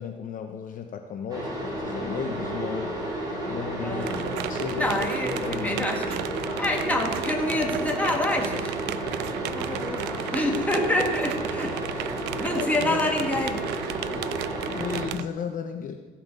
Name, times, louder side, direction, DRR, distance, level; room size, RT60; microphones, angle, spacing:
voice 1, 0.0-1.5 1.8-4.2 4.5-5.7 12.5-13.1 14.7-16.0, left 7 dB, 50° left, 5 dB, 0.8 m, -35 dB
sound 1, 1.3-15.1, right 1 dB, 20° right, 3.9 m, -32 dB
voice 2, 3.8-4.3 4.7-6.2 6.6-8.8 9.4-12.1 12.4-13.7, left 1 dB, 10° left, 1 dB, 1.7 m, -27 dB
sound 2, 4.0-15.3, right 14 dB, 80° right, 0.4 m, -34 dB
15.0 x 5.8 x 5.4 m, 1.3 s
cardioid pair, 110°, 17 cm